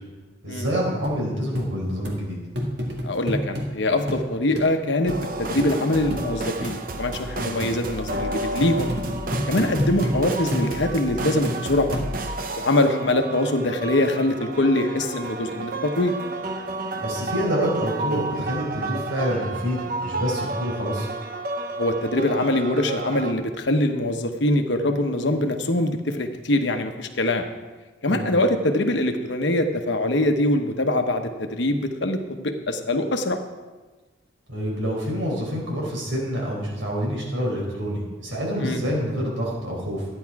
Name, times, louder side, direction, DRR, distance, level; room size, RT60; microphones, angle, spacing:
voice 1, 0.4-2.4 7.4-7.5 17.0-21.1 28.1-28.3 34.5-40.1, equal, 85° right, -3 dB, 4.2 m, -27 dB
sound 1, 1.0-1.2 1.6-1.7 2.1-2.2 2.6-3.7 4.1-4.3 4.6-4.7 5.1-5.2 5.6-5.7 6.1-6.3 6.6-6.7 7.1-7.2 7.6-7.8 8.1-8.3 8.6-10.2 10.5-10.7 11.2-11.6 11.9-12.4 12.9-13.0, equal, 65° right, 1.8 m, -28 dB
voice 2, 3.0-8.9 9.4-12.0 12.5-16.1 21.7-27.5 28.0-33.4 38.6-38.8, left 1 dB, 70° left, 5 dB, 1.0 m, -23 dB
sound 2, 5.1-23.3, right 2 dB, 45° right, 0.8 m, -31 dB
12.5 x 9.9 x 4.7 m, 1.2 s
head